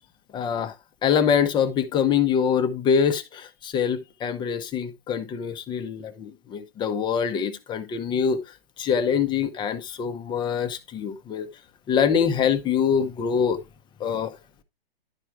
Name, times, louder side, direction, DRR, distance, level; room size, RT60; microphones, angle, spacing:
voice 1, 0.3-0.7 1.0-8.4 8.8-11.5 11.9-13.6 14.0-14.3, left 7 dB, 15° left, 1.0 m, -24 dB
11.5 x 4.4 x 4.7 m
hypercardioid pair, 130°, 30 cm